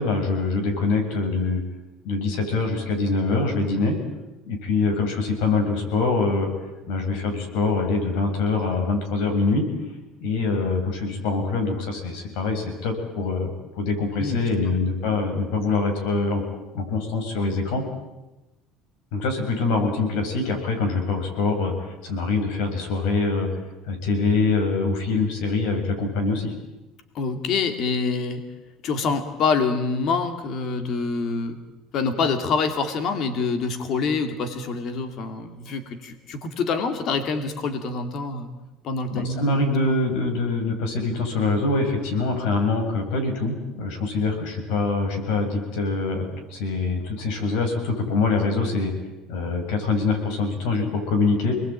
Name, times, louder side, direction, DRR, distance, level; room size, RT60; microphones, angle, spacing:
voice 1, 0.0-1.6 2.0-4.0 4.5-6.5 6.9-9.7 10.2-13.5 13.8-16.4 16.7-17.8 19.1-23.5 23.9-26.5 39.1-48.9 49.3-51.5, left 3 dB, 70° left, 4 dB, 7.3 m, -24 dB
voice 2, 14.2-14.7 27.1-28.4 28.8-31.6 31.9-38.5 38.8-40.0, left 4 dB, 40° left, 8 dB, 2.6 m, -26 dB
28.0 x 20.5 x 9.1 m, 1.0 s
cardioid pair, 175°, 0 cm